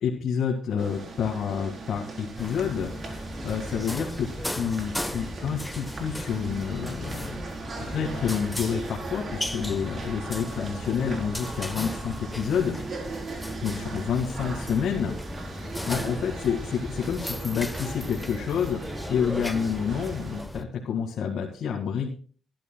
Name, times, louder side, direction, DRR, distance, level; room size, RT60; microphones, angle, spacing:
voice 1, 0.0-7.3 7.7-12.8 13.6-15.1 15.5-18.8 19.1-22.2, left 7 dB, 70° left, 0 dB, 2.1 m, -29 dB
sound 1, 0.8-20.4, right 3 dB, 45° right, 4.2 m, -39 dB
sound 2, 2.4-20.6, left 1 dB, 5° left, 1.1 m, -36 dB
20.5 x 11.5 x 2.3 m, 0.42 s
cardioid pair, 90°, 0 cm